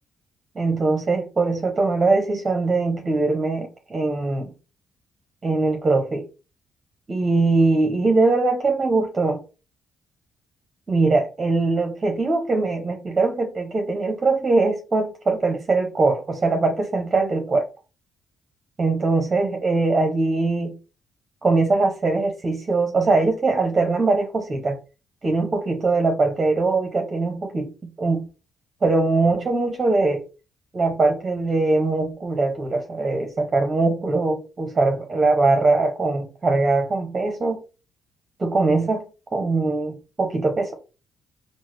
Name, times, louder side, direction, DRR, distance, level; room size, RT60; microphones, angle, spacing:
voice 1, 0.6-4.5 5.4-6.2 7.1-9.4 10.9-17.7 18.8-20.7 21.4-24.8 25.2-28.3 28.8-30.2 30.7-37.6 38.4-39.0 39.3-40.7, right 3 dB, 30° right, 0.7 m, -21 dB
3.8 x 2.0 x 3.1 m
cardioid pair, 90°, 0 cm